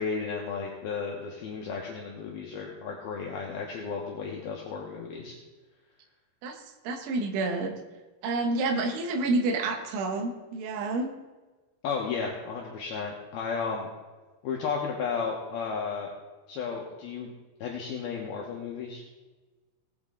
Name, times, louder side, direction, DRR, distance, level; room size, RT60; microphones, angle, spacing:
voice 1, 0.0-5.3 11.8-13.9 14.4-16.1 16.5-17.3 17.6-19.0, left 5 dB, 70° left, -1 dB, 2.6 m, -33 dB
voice 2, 6.4-7.7 8.2-11.1, right 2 dB, 85° right, 4 dB, 3.6 m, -29 dB
17.5 x 8.3 x 3.8 m, 1.2 s
omnidirectional pair, 5.3 m